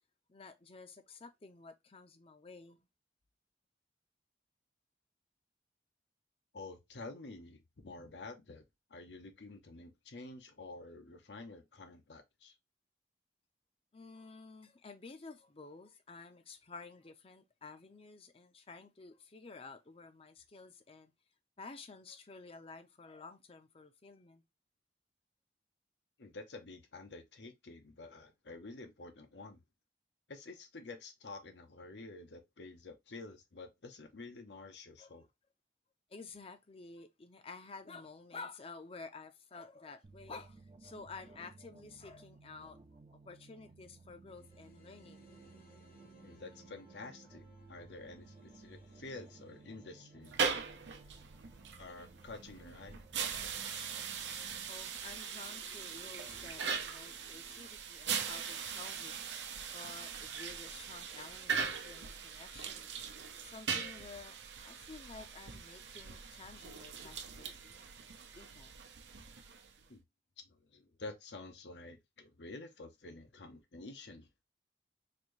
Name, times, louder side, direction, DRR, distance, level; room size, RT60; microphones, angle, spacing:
voice 1, 0.3-2.9 13.9-21.1 21.6-24.4 35.0-35.3 36.1-42.8 43.2-45.3 54.7-59.2 59.7-62.9 63.4-64.4 64.6-67.9 68.3-68.7, left 4 dB, 35° left, 0.6 m, -51 dB
voice 2, 6.5-8.6 8.9-12.5 26.2-29.6 30.3-35.3 46.2-50.7 51.8-53.0 53.4-53.5 61.9-62.1 69.9-70.0 70.4-74.3, left 3 dB, 80° left, 0.9 m, -49 dB
sound 1, 40.0-54.7, right 3 dB, 35° right, 0.4 m, -58 dB
sound 2, 44.3-57.7, equal, 55° left, 1.0 m, -65 dB
sound 3, 50.2-69.8, right 6 dB, 90° right, 0.7 m, -40 dB
4.1 x 2.7 x 3.1 m
head